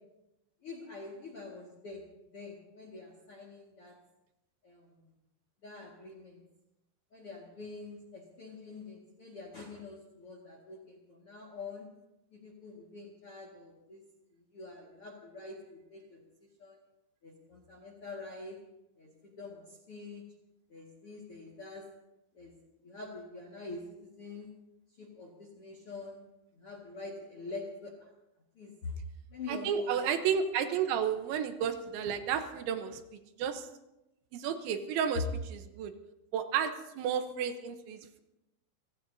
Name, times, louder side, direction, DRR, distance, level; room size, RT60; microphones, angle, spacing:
voice 1, 0.6-2.0 2.3-4.0 4.6-5.1 5.6-6.4 7.1-11.9 12.3-14.0 14.3-16.2 16.6-16.8 17.2-18.6 19.0-20.2 20.7-21.9 22.3-22.6 22.8-24.5 25.0-26.2 26.5-28.1 28.6-28.9 29.3-30.1, left 3 dB, 50° left, 0 dB, 1.8 m, -45 dB
voice 2, 29.5-33.0 33.4-33.7 34.3-35.9 36.3-38.2, right 7 dB, 80° right, 7 dB, 3.3 m, -32 dB
28.5 x 17.0 x 2.7 m, 0.92 s
omnidirectional pair, 5.4 m